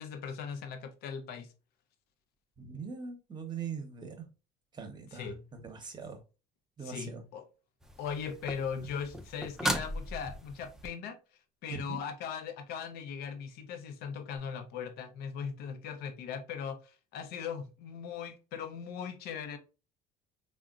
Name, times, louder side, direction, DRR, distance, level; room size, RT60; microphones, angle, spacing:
voice 1, 0.0-1.5 5.1-5.4 6.8-7.5 8.0-11.2 11.6-19.6, left 7 dB, 70° left, 8 dB, 0.6 m, -39 dB
voice 2, 2.6-4.3 4.7-6.2 6.8-7.2 11.7-12.0, right 6 dB, 25° right, 6 dB, 0.8 m, -41 dB
sound 1, 7.8-10.9 14.4-14.5, equal, 5° right, 0.3 m, -37 dB
3.5 x 2.1 x 2.4 m, 0.32 s
supercardioid pair, 100°, 17 cm